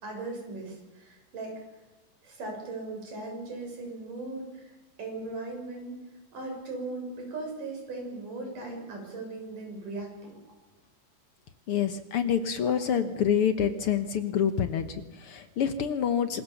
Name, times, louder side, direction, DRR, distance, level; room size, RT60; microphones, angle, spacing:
voice 1, 0.0-1.5 2.2-4.7 5.0-6.0 6.3-10.4, right 2 dB, 75° right, 2 dB, 7.9 m, -38 dB
voice 2, 11.7-16.4, left 8 dB, 60° left, 10 dB, 1.6 m, -27 dB
26.5 x 21.0 x 7.2 m, 1.1 s
omnidirectional pair, 3.7 m